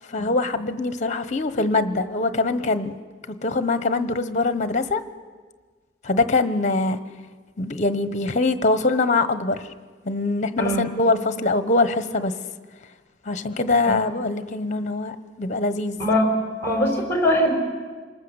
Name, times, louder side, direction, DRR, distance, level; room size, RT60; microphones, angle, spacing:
voice 1, 0.1-2.9 3.3-5.0 6.0-7.0 7.6-9.7 10.0-12.3 13.2-16.0, left 3 dB, 40° left, 12 dB, 1.2 m, -23 dB
voice 2, 16.6-17.5, left 1 dB, 10° left, 2 dB, 5.1 m, -21 dB
28.0 x 20.0 x 8.2 m, 1.5 s
head